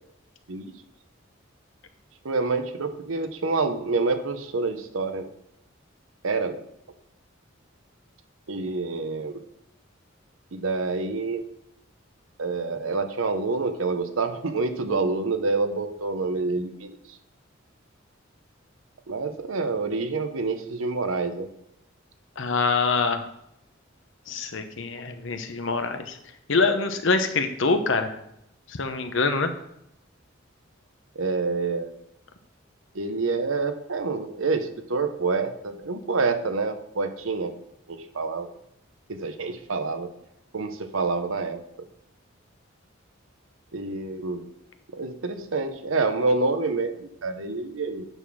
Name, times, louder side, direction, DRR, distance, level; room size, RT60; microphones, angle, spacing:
voice 1, 2.2-5.3 6.2-6.7 8.5-9.4 10.5-11.4 12.4-17.0 19.1-21.5 31.1-31.9 32.9-37.5 37.9-38.5 39.1-40.1 40.5-41.6 43.7-44.5 44.9-48.1, right 3 dB, 90° right, 9 dB, 0.9 m, -27 dB
voice 2, 22.4-23.2 24.3-26.2 26.5-28.1 28.7-29.5, left 4 dB, 65° left, 7 dB, 0.9 m, -25 dB
9.1 x 4.1 x 6.1 m, 0.79 s
head